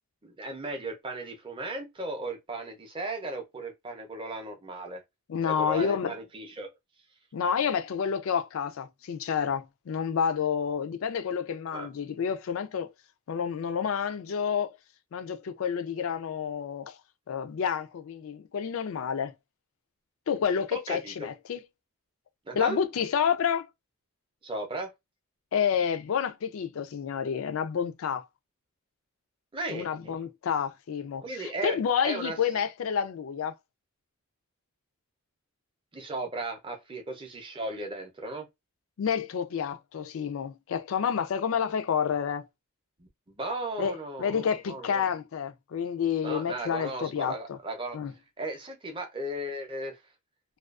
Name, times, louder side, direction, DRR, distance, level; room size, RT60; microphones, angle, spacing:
voice 1, 0.2-5.0 5.5-6.7 11.7-11.9 20.7-21.3 22.5-22.8 24.4-24.9 29.5-30.2 31.2-31.8 32.0-32.4 35.9-38.4 43.0-45.1 46.2-48.0 48.4-50.0, right 2 dB, 20° right, 0.5 m, -36 dB
voice 2, 5.3-6.1 7.3-12.9 13.3-14.8 15.1-17.0 17.3-19.3 20.3-21.6 22.5-23.7 25.5-28.2 29.7-33.5 39.0-42.5 43.8-43.9 44.2-47.6 47.9-48.1, left 7 dB, 60° left, 0.3 m, -29 dB
2.4 x 2.2 x 2.3 m
head